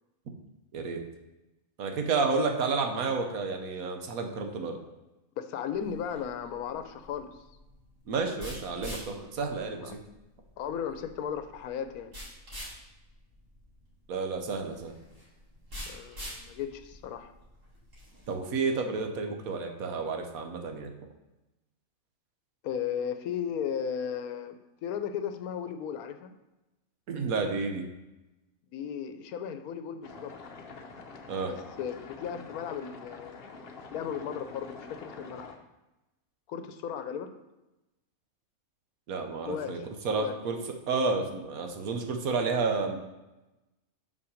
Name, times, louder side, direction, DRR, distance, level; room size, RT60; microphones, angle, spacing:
voice 1, 1.8-4.8 8.1-10.0 14.1-14.9 18.3-20.9 27.1-27.9 31.3-31.5 39.1-40.6 40.9-43.0, right 4 dB, 75° right, 4 dB, 1.3 m, -30 dB
voice 2, 5.4-7.3 9.8-10.0 10.6-12.1 15.9-17.3 22.6-26.3 28.7-30.3 31.5-33.4 33.9-35.5 36.5-37.3 39.4-39.8 40.1-40.4, left 8 dB, 90° left, 9 dB, 1.1 m, -35 dB
sound 1, 5.7-18.3, equal, 60° right, 3.0 m, -46 dB
sound 2, 30.0-35.6, left 4 dB, 50° left, 0.9 m, -46 dB
5.7 x 4.9 x 6.3 m, 1.0 s
omnidirectional pair, 1.5 m